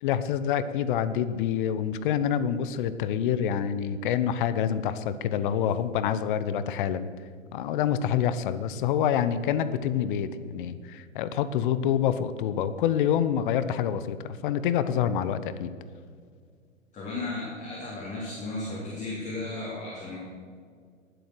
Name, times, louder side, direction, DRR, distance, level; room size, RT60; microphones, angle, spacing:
voice 1, 0.0-7.1 7.5-15.7, left 9 dB, 40° left, 13 dB, 0.9 m, -27 dB
voice 2, 16.9-20.2, left 2 dB, 20° left, -6 dB, 3.9 m, -34 dB
19.5 x 7.9 x 6.6 m, 2.1 s
figure-of-eight pair, 110°, 39 cm